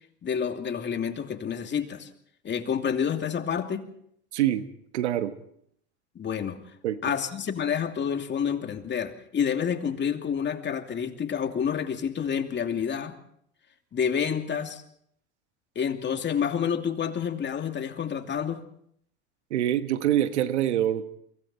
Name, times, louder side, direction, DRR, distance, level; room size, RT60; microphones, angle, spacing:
voice 1, 0.2-2.1 2.4-3.9 6.1-6.6 7.0-13.1 13.9-14.8 15.7-18.6, left 7 dB, 35° left, 5 dB, 2.7 m, -28 dB
voice 2, 4.3-4.6 4.9-5.3 6.8-7.0 19.5-21.1, right 12 dB, 90° right, 11 dB, 1.4 m, -25 dB
29.5 x 24.0 x 4.4 m, 0.69 s
hypercardioid pair, 90°, 33 cm